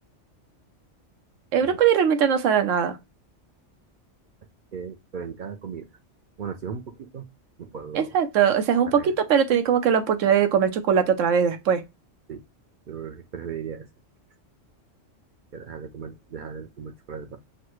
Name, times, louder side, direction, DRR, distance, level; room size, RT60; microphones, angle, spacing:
voice 1, 1.5-3.0 7.9-11.8, right 8 dB, 90° right, 1.0 m, -21 dB
voice 2, 4.7-5.9 6.4-7.3 7.6-8.2 8.9-9.1 12.3-12.4 12.9-13.9 15.5-17.4, right 7 dB, 60° right, 0.5 m, -37 dB
6.4 x 2.2 x 3.0 m
omnidirectional pair, 1.3 m